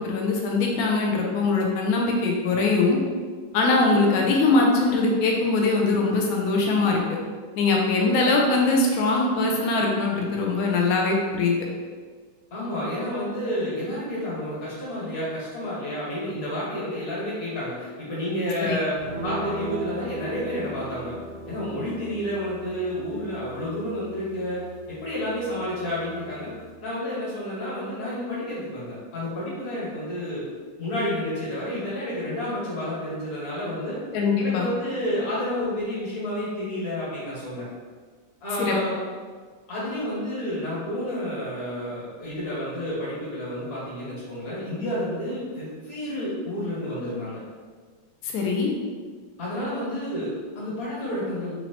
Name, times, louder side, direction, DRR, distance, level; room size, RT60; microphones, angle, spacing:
voice 1, 0.0-3.0 3.5-7.2 7.6-11.6 18.6-18.8 34.1-34.7 38.6-38.8 48.2-48.7, left 3 dB, 90° left, -1 dB, 0.8 m, -22 dB
voice 2, 12.5-18.9 19.2-21.1 21.5-24.6 24.9-26.5 26.8-30.4 30.8-34.0 34.4-37.6 38.4-39.0 39.7-47.4 49.4-51.5, left 1 dB, 45° left, -9 dB, 1.9 m, -30 dB
sound 1, 19.0-26.7, right 1 dB, 65° right, 0.6 m, -38 dB
4.1 x 2.9 x 2.9 m, 1.5 s
omnidirectional pair, 2.2 m